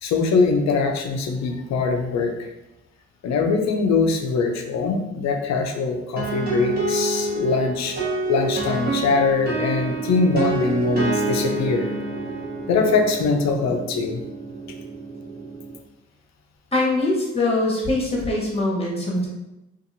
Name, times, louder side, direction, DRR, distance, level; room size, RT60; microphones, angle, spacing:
voice 1, 0.0-2.5 3.2-8.0 8.3-11.9 12.7-14.2, left 4 dB, 65° left, 4 dB, 0.5 m, -22 dB
sound 1, 6.2-15.8, right 2 dB, 30° right, 1.0 m, -27 dB
voice 2, 16.7-19.3, left 2 dB, 20° left, -3 dB, 1.1 m, -22 dB
2.7 x 2.5 x 2.6 m, 0.94 s
cardioid pair, 75°, 29 cm